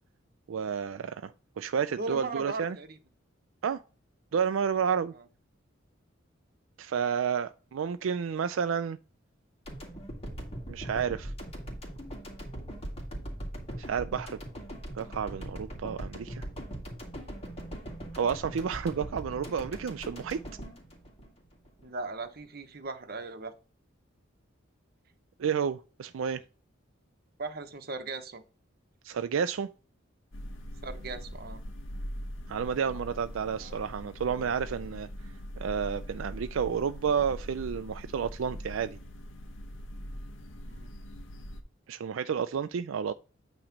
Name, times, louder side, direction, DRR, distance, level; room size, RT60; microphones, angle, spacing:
voice 1, 0.5-2.8 3.6-3.8 4.3-5.1 6.8-9.0 10.7-11.3 13.8-14.4 14.9-16.5 18.1-20.4 25.4-26.4 29.0-29.7 32.5-35.1 35.6-39.0 41.9-43.1, right 7 dB, 85° right, 0.4 m, -31 dB
voice 2, 2.0-2.9 21.8-23.5 27.4-28.4 30.8-31.6 33.6-33.8 40.6-40.9, right 3 dB, 50° right, 1.0 m, -38 dB
sound 1, 9.7-21.9, right 1 dB, 30° left, 2.0 m, -41 dB
sound 2, 30.3-41.6, equal, 70° left, 1.0 m, -42 dB
8.7 x 3.1 x 5.1 m
head